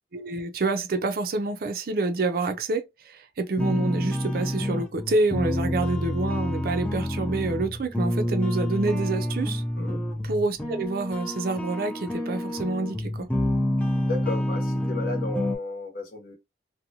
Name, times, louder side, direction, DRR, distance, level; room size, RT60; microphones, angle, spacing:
voice 1, 0.1-9.6 10.3-13.3, right 2 dB, 55° right, 0.4 m, -27 dB
sound 1, 3.6-15.6, left 1 dB, 10° left, 0.4 m, -28 dB
voice 2, 9.8-10.1 14.0-16.3, left 3 dB, 50° left, 0.8 m, -33 dB
2.7 x 2.2 x 2.7 m
head